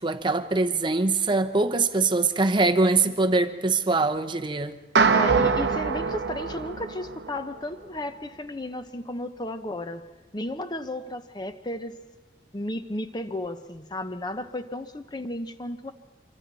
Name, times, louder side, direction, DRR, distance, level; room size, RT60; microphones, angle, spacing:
voice 1, 0.0-4.8, right 3 dB, 25° right, 0.8 m, -23 dB
sound 1, 5.0-7.4, right 5 dB, 80° right, 1.0 m, -23 dB
voice 2, 5.1-10.0 10.3-12.0 12.5-15.9, left 1 dB, 25° left, 1.0 m, -33 dB
25.5 x 24.0 x 4.2 m
head